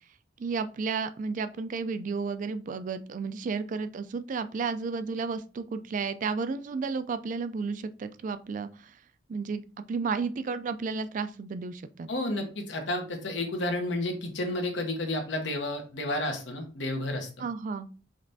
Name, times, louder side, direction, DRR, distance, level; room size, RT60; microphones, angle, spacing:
voice 1, 0.4-8.7 9.3-9.6 9.9-12.1 17.4-18.0, right 4 dB, 45° right, 11 dB, 0.3 m, -32 dB
voice 2, 12.1-17.3, left 1 dB, 80° left, 2 dB, 1.1 m, -31 dB
5.1 x 3.3 x 2.6 m, 0.35 s
head